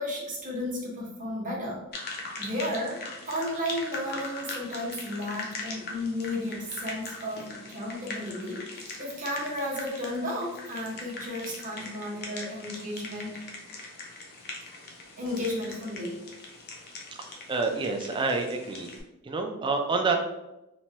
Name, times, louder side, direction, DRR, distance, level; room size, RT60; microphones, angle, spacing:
voice 1, 0.0-1.8 2.4-3.0 3.2-13.4 15.2-16.2, left 1 dB, 35° right, -3 dB, 0.8 m, -33 dB
sound 1, 1.9-19.0, left 3 dB, 45° left, 0.5 m, -41 dB
voice 2, 17.2-18.9 19.2-20.2, right 4 dB, 20° right, 3 dB, 0.3 m, -28 dB
3.0 x 2.2 x 2.8 m, 0.94 s
head